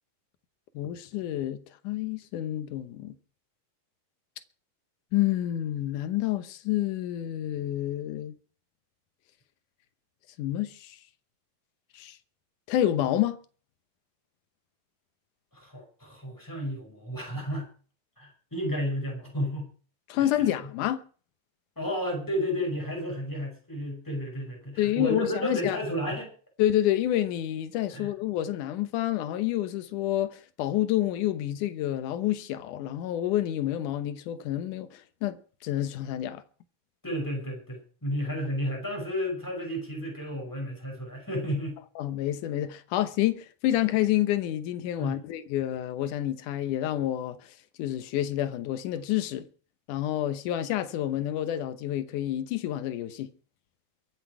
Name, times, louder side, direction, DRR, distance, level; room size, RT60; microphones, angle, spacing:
voice 1, 0.8-3.2 5.1-8.3 10.4-11.0 11.9-12.2 12.7-13.4 20.1-21.0 24.8-25.8 26.6-36.4 42.0-47.4 47.8-49.5 49.9-53.3, left 12 dB, 70° left, 2.3 m, -28 dB
voice 2, 15.5-17.7 18.2-19.7 20.1-20.5 21.8-26.3 27.9-28.1 37.0-41.8 45.0-45.2, equal, 5° left, 5.5 m, -32 dB
23.0 x 8.1 x 4.7 m
omnidirectional pair, 4.0 m